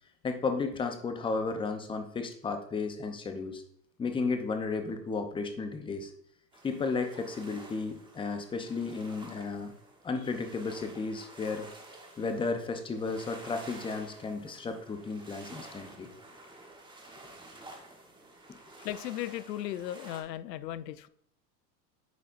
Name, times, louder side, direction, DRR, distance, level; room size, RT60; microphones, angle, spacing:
voice 1, 0.2-3.6 4.0-6.1 6.6-9.7 10.0-11.7 12.2-16.1, left 4 dB, 10° left, 6 dB, 0.6 m, -33 dB
sound 1, 6.5-20.2, right 2 dB, 10° right, 1.2 m, -51 dB
voice 2, 18.8-21.1, left 12 dB, 90° left, 16 dB, 0.6 m, -36 dB
9.2 x 4.1 x 2.5 m, 0.67 s
hypercardioid pair, 110°, 49 cm